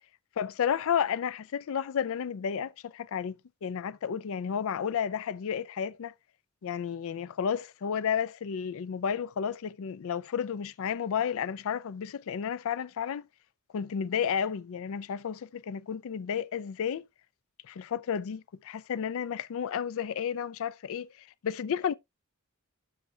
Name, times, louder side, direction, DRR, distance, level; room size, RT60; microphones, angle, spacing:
voice 1, 0.4-6.1 6.6-13.3 13.7-17.0 17.7-21.9, left 7 dB, 65° left, 0.4 m, -32 dB
10.5 x 7.2 x 2.3 m
head